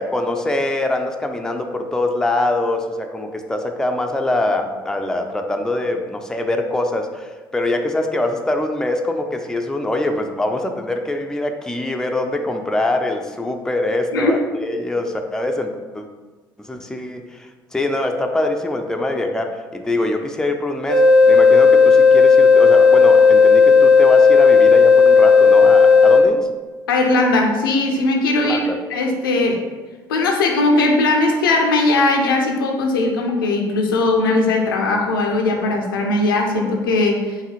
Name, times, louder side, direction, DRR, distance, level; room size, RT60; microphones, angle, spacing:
voice 1, 0.0-16.0 16.6-26.5 28.4-28.8, left 2 dB, 5° left, 4 dB, 0.4 m, -23 dB
sound 1, 20.9-26.2, left 5 dB, 85° right, 0.5 m, -11 dB
voice 2, 26.9-29.6 30.1-37.4, left 2 dB, 75° left, 1 dB, 0.5 m, -19 dB
4.7 x 2.7 x 3.0 m, 1.3 s
figure-of-eight pair, 50°, 11 cm